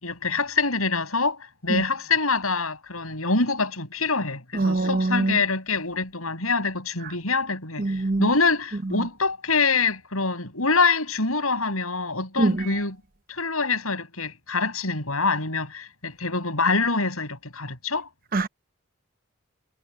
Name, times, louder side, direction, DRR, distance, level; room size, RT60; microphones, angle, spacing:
voice 1, 0.0-13.0 13.3-18.1, left 4 dB, 85° left, 7.0 m, -25 dB
voice 2, 4.5-5.4 7.8-8.3 8.9-9.0 12.4-12.7 18.3-18.5, right 2 dB, 40° right, 0.9 m, -23 dB
head